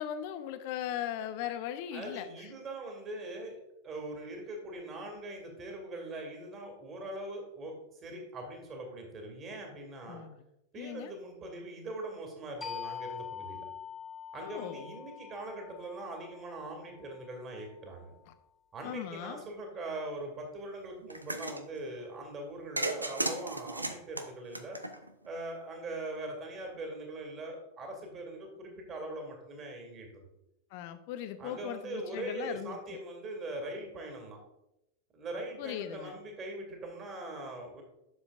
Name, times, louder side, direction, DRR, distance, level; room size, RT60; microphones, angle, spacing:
voice 1, 0.0-2.5 10.1-10.4 10.8-11.1 14.4-14.9 18.8-19.4 30.7-33.0 35.6-36.2, left 10 dB, 45° left, 10 dB, 0.7 m, -39 dB
voice 2, 1.9-3.6 3.8-10.2 10.7-13.7 14.3-18.1 18.7-24.8 25.2-30.3 31.4-34.4 35.1-37.8, right 2 dB, 25° right, 2 dB, 2.4 m, -41 dB
sound 1, 12.6-17.9, left 8 dB, 15° left, 1.3 m, -45 dB
sound 2, 21.1-21.6 22.8-25.3, right 2 dB, 85° right, 0.7 m, -35 dB
11.0 x 7.1 x 2.5 m, 0.88 s
figure-of-eight pair, 90°, 0 cm